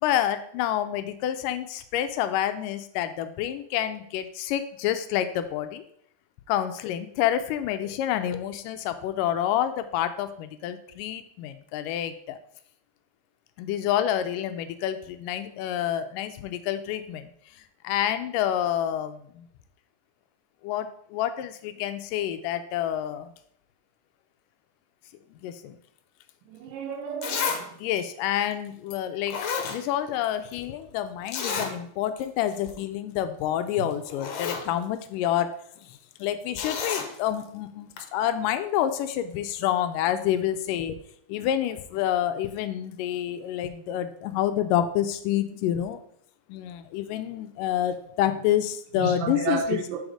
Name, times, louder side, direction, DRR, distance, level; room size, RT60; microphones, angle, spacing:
voice 1, 0.0-5.8 6.5-12.4 13.6-17.3 17.8-19.5 20.6-23.3 25.4-25.8 27.8-29.4 29.7-35.6 36.2-41.0 41.3-46.0 46.5-49.8, left 11 dB, 85° left, 10 dB, 2.2 m, -28 dB
voice 2, 26.5-27.7 49.0-50.0, right 6 dB, 85° right, 4 dB, 2.4 m, -31 dB
Zipper (clothing), 26.7-26.8 27.2-27.6 28.0-28.1 28.9-29.0 29.3-30.3 30.5-30.6 31.3-31.7 32.2-32.3 32.6-32.8 33.7-33.8 34.1-34.7 36.6-37.1 38.0-38.1, left 6 dB, 70° left, 1.8 m, -30 dB
6.4 x 4.2 x 4.8 m, 0.66 s
omnidirectional pair, 3.8 m